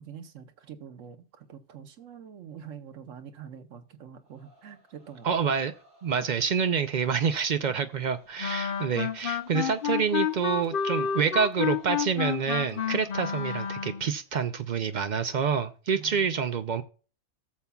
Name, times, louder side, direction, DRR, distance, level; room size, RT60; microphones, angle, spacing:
voice 1, 0.0-5.4 15.9-16.3, right 8 dB, 80° right, 1.3 m, -45 dB
sound 1, 4.2-13.8, equal, 15° right, 3.3 m, -57 dB
voice 2, 5.2-5.7 6.0-16.8, right 6 dB, 55° right, 0.5 m, -27 dB
Wind instrument woodwind instrument, 8.4-14.1, left 7 dB, 55° left, 0.7 m, -30 dB
17.5 x 6.9 x 2.3 m
omnidirectional pair, 1.3 m